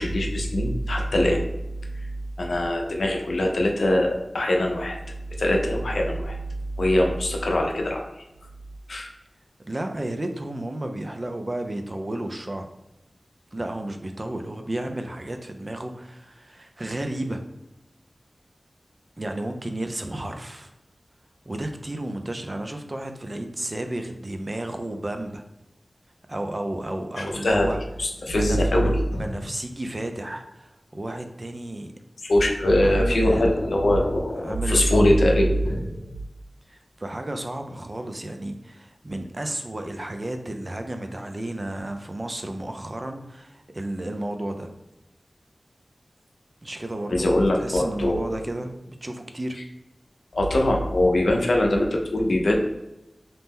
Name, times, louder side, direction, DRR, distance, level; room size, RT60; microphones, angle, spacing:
voice 1, 0.0-1.4 2.4-5.0 5.4-6.4 6.8-8.0 8.9-9.1 27.2-27.7 28.0-29.2 32.2-36.0 47.1-48.2 50.3-52.5, left 1 dB, 90° left, 1 dB, 0.5 m, -22 dB
voice 2, 9.6-12.7 13.5-17.4 19.2-20.7 21.5-25.4 26.3-27.8 28.2-28.7 29.2-31.9 32.8-33.4 34.4-35.3 36.7-44.7 46.6-49.6, right 1 dB, 40° right, 6 dB, 0.3 m, -32 dB
2.7 x 2.1 x 3.4 m, 0.92 s
wide cardioid pair, 60°, 0 cm